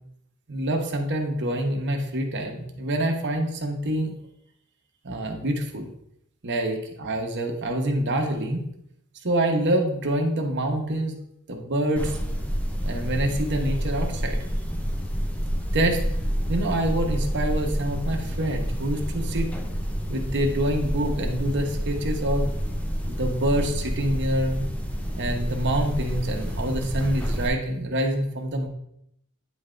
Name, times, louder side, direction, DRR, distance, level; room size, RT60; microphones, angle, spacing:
voice 1, 0.5-4.1 5.0-5.9 6.4-8.6 9.2-11.2 11.5-12.2 12.8-14.4 15.7-16.0 16.5-19.5 20.1-22.5 23.1-24.7 25.2-28.7, right 1 dB, 55° right, 3 dB, 1.0 m, -26 dB
sound 1, 12.0-27.5, equal, 5° left, 0.6 m, -28 dB
9.3 x 3.8 x 3.3 m, 0.75 s
head